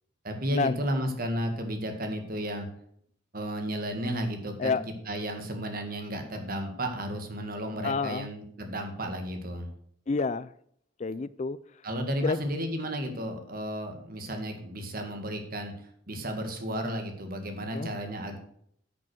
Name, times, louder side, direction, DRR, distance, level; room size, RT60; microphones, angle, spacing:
voice 1, 0.2-2.7 3.3-4.8 5.1-9.7 11.8-15.7 16.1-18.4, equal, 50° right, 5 dB, 2.0 m, -33 dB
voice 2, 7.8-8.3 10.1-10.5 11.0-11.6 12.2-12.4 17.7-17.9, left 4 dB, 35° left, 17 dB, 0.4 m, -28 dB
10.5 x 6.2 x 6.5 m, 0.66 s
head